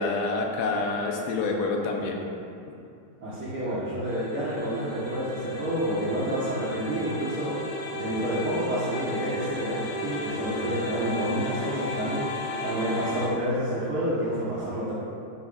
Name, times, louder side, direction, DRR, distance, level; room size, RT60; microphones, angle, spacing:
voice 1, 0.0-2.2, left 3 dB, 90° left, 1 dB, 2.9 m, -27 dB
voice 2, 3.2-12.3 12.5-14.9, right 1 dB, 60° right, -10 dB, 1.5 m, -29 dB
sound 1, 4.0-13.3, left 2 dB, 70° left, 2.6 m, -35 dB
12.0 x 7.6 x 2.6 m, 2.5 s
omnidirectional pair, 4.5 m